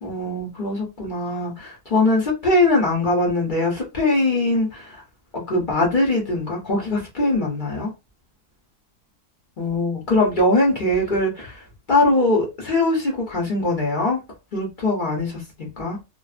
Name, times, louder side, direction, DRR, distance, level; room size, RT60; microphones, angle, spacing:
voice 1, 0.0-5.0 5.5-7.9 9.6-14.2 14.5-16.0, left 2 dB, 35° left, 0.9 m, -21 dB
2.6 x 2.5 x 2.4 m
omnidirectional pair, 1.8 m